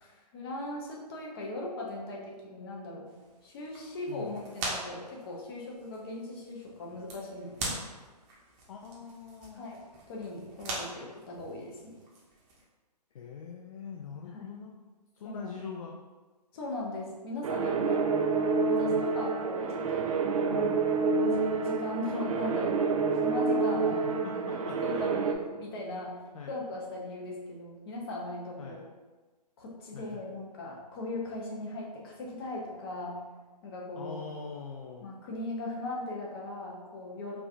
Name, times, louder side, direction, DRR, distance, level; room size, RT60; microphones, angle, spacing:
voice 1, 0.0-3.1 3.4-7.7 9.5-12.0 14.3-14.5 15.2-15.6 16.5-18.1 18.6-20.1 20.5-20.9 21.2-22.8 23.2-24.5 24.8-28.8 29.6-33.2 33.6-34.2 35.0-37.4, left 2 dB, 35° left, -2 dB, 0.8 m, -39 dB
sound 1, 3.1-12.6, right 2 dB, 25° right, 0.8 m, -42 dB
voice 2, 8.7-9.6 13.1-14.7 15.2-16.0 18.9-19.0 24.2-25.2 26.3-26.5 28.6-28.8 29.9-30.2 34.0-35.1, left 6 dB, 55° left, 1 dB, 0.4 m, -43 dB
sound 2, 17.4-25.3, right 4 dB, 55° right, 0.4 m, -28 dB
4.7 x 2.4 x 2.5 m, 1.3 s
hypercardioid pair, 140°, 21 cm